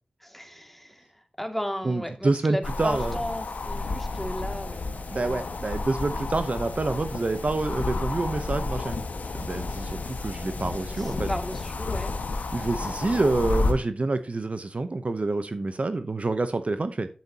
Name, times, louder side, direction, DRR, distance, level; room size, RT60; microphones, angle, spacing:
voice 1, 0.2-1.1 1.4-5.4 10.9-12.1, equal, 5° left, 2.4 m, -35 dB
voice 2, 1.8-3.2 5.1-9.0 9.4-11.3 12.5-17.1, right 3 dB, 55° right, 0.9 m, -27 dB
sound 1, 2.6-13.7, left 3 dB, 90° left, 1.6 m, -31 dB
10.5 x 8.4 x 2.9 m
cardioid pair, 40°, 3 cm